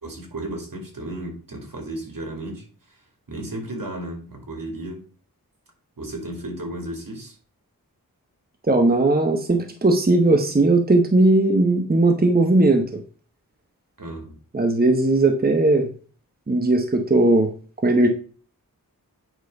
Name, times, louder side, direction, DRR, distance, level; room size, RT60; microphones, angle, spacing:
voice 1, 0.0-3.0 3.3-5.1 6.0-7.4 14.0-14.3, right 1 dB, 65° right, 2.4 m, -34 dB
voice 2, 8.7-13.0 14.5-15.9 16.5-17.5 17.8-18.1, right 2 dB, 25° right, 1.0 m, -18 dB
9.2 x 3.2 x 5.2 m
cardioid pair, 50°, 36 cm